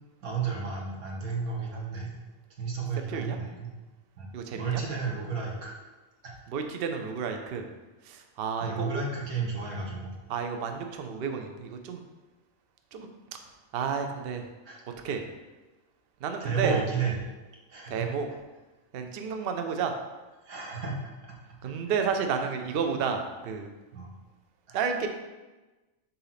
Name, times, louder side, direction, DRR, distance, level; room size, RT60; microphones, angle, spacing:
voice 1, 0.2-2.2 2.6-3.7 4.2-4.3 4.5-5.7 6.2-6.3 8.6-10.1 14.6-14.8 16.4-17.1 17.7-18.1 20.4-21.0 21.6-21.7 23.9-24.1 24.7-24.8, right 5 dB, 90° right, -2 dB, 1.7 m, -32 dB
voice 2, 4.3-4.8 6.5-7.7 8.0-9.0 10.3-12.0 12.9-13.1 13.7-14.4 14.9-15.2 16.2-16.7 17.9-18.3 18.9-19.9 21.6-23.7 24.7-25.1, right 6 dB, 60° right, 5 dB, 0.7 m, -31 dB
6.7 x 2.8 x 5.7 m, 1.2 s
omnidirectional pair, 1.5 m